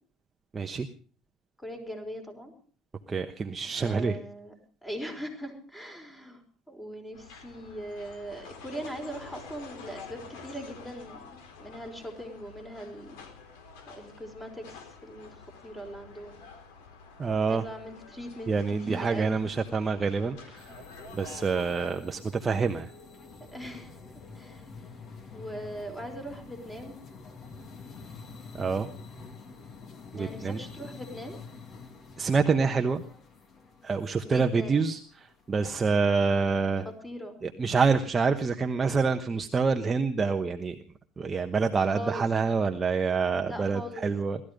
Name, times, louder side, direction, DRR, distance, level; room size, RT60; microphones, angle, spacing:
voice 1, 0.5-0.9 3.1-4.2 17.2-17.7 18.5-20.7 21.1-22.9 28.6-28.9 30.1-30.6 32.2-33.0 33.8-36.9 37.4-40.8 41.2-44.4, right 5 dB, 20° right, 5 dB, 1.1 m, -27 dB
voice 2, 1.6-2.5 3.8-4.5 4.8-6.4 6.7-13.2 13.9-15.3 15.6-16.4 17.5-18.5 18.8-19.5 23.5-24.0 24.3-24.6 25.3-27.0 30.1-31.4 34.2-34.8 37.0-37.4 41.9-42.2 43.4-44.0, equal, 10° left, 4 dB, 5.0 m, -40 dB
sound 1, 7.1-21.9, left 4 dB, 75° left, 4.1 m, -48 dB
sound 2, 20.6-35.9, left 4 dB, 35° left, 2.3 m, -47 dB
18.5 x 13.5 x 5.2 m, 0.42 s
supercardioid pair, 130°, 0 cm